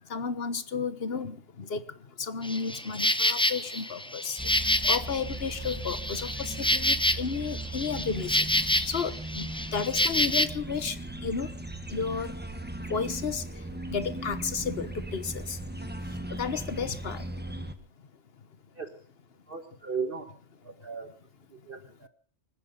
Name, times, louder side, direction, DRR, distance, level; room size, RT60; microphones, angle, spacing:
voice 1, 0.1-1.8 2.2-11.5 11.9-12.3 12.9-13.4 13.9-15.6 16.3-17.3, left 5 dB, 55° left, 1.4 m, -33 dB
Insect, 2.4-10.5, left 1 dB, 5° left, 0.4 m, -28 dB
sound 1, 4.4-17.7, right 2 dB, 10° right, 1.2 m, -38 dB
voice 2, 19.5-20.2 20.6-21.1 21.7-22.1, right 5 dB, 45° right, 1.5 m, -36 dB
25.5 x 10.0 x 5.3 m
omnidirectional pair, 1.3 m